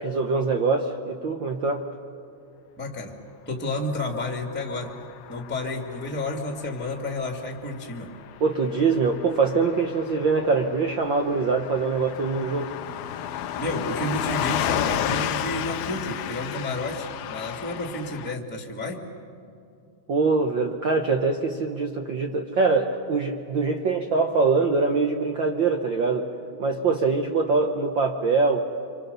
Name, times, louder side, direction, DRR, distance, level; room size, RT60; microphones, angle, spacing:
voice 1, 0.0-1.9 8.4-12.7 20.1-26.3 26.6-28.6, right 4 dB, 70° right, 4 dB, 1.1 m, -23 dB
voice 2, 2.8-3.1 3.4-4.9 5.3-8.1 13.6-19.0, left 1 dB, 5° left, 2 dB, 1.6 m, -31 dB
Car passing by / Truck, 4.0-18.4, left 10 dB, 75° left, 1.7 m, -33 dB
27.0 x 25.5 x 6.9 m, 2.6 s
omnidirectional pair, 3.5 m